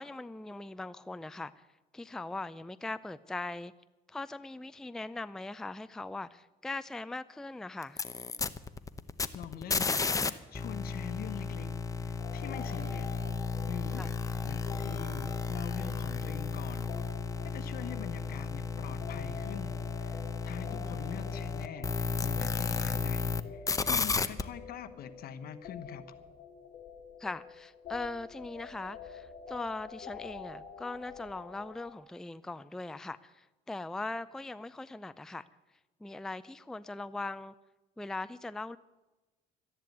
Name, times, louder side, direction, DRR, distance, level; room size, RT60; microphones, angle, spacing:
voice 1, 0.0-1.5 1.9-3.7 4.1-8.0 14.0-14.1 20.7-21.0 27.2-35.5 36.0-37.5 38.0-38.8, left 2 dB, 5° left, 13 dB, 0.4 m, -40 dB
sound 1, 7.8-10.3 10.5-23.4 23.7-24.4, left 4 dB, 20° left, 0.8 m, -33 dB
voice 2, 9.3-13.1 13.7-16.9 17.4-26.1, left 8 dB, 65° left, 11 dB, 1.2 m, -44 dB
sound 2, 12.2-32.0, left 6 dB, 40° left, 3.1 m, -48 dB
13.5 x 10.5 x 9.2 m, 1.1 s
cardioid pair, 110°, 17 cm